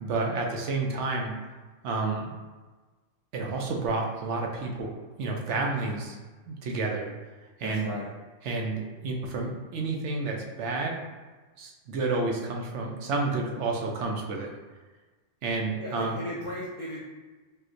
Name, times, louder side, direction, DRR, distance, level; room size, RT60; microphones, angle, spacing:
voice 1, 0.0-1.3 1.8-2.3 3.3-4.9 5.2-6.2 6.5-7.1 7.6-7.9 8.4-11.0 11.6-14.5 15.4-16.2, right 3 dB, 75° right, 0 dB, 0.9 m, -30 dB
voice 2, 7.6-8.1 15.8-17.0, left 1 dB, 45° left, -8 dB, 0.4 m, -36 dB
4.3 x 2.2 x 2.5 m, 1.3 s
omnidirectional pair, 1.2 m